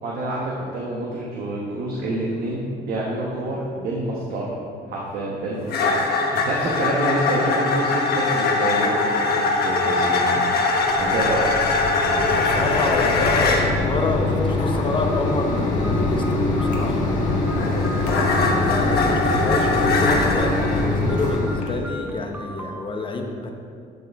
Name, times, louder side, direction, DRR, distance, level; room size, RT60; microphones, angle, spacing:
voice 1, 0.0-4.5 4.9-11.5 17.9-18.2, right 1 dB, 65° right, -4 dB, 1.1 m, -27 dB
sound 1, 5.7-13.7 17.0-20.9, left 3 dB, 65° left, 1.1 m, -22 dB
Mechanisms, 10.7-21.7, left 2 dB, 45° left, 1.4 m, -24 dB
voice 2, 12.2-17.1 18.5-23.5, left 3 dB, 30° left, 3 dB, 0.8 m, -28 dB
sound 2, 14.8-22.8, equal, 10° right, 0.6 m, -36 dB
11.5 x 4.1 x 3.5 m, 2.3 s
cardioid pair, 110°, 17 cm